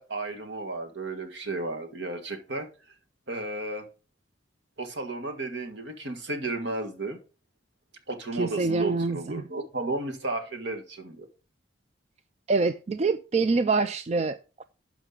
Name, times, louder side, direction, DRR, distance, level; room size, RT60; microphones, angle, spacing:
voice 1, 0.0-2.7 3.3-3.9 4.8-7.2 8.1-11.3, right 2 dB, 65° right, 1.6 m, -33 dB
voice 2, 8.3-9.4 12.5-14.6, right 3 dB, 35° right, 0.3 m, -26 dB
11.5 x 5.1 x 3.8 m
head